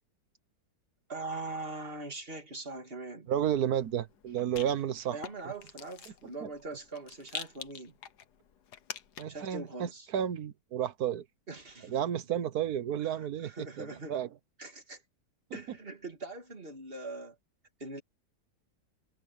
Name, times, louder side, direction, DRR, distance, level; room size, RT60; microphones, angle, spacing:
voice 1, 1.1-3.3 5.1-7.9 9.3-10.1 11.5-12.0 13.0-14.2 14.6-15.0 15.5-17.4 17.8-18.0, right 2 dB, 35° right, 3.0 m, -42 dB
voice 2, 3.3-5.2 6.4-6.5 9.2-11.2 11.8-14.3, right 10 dB, 65° right, 1.6 m, -32 dB
Rattle, 3.4-9.5, left 8 dB, 80° left, 1.7 m, -47 dB
omnidirectional pair, 1.7 m